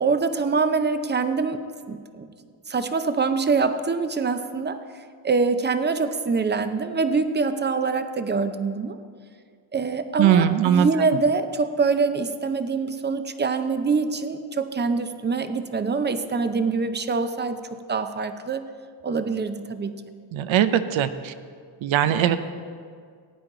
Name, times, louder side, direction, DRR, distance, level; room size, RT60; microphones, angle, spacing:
voice 1, 0.0-1.6 1.9-2.3 2.7-4.8 5.2-9.0 9.7-18.7 19.0-20.0, right 4 dB, 20° right, 10 dB, 0.6 m, -24 dB
voice 2, 10.2-10.9 20.3-21.3 21.8-22.4, right 10 dB, 70° right, 11 dB, 0.7 m, -20 dB
16.0 x 9.0 x 3.9 m, 2.1 s
cardioid pair, 95°, 49 cm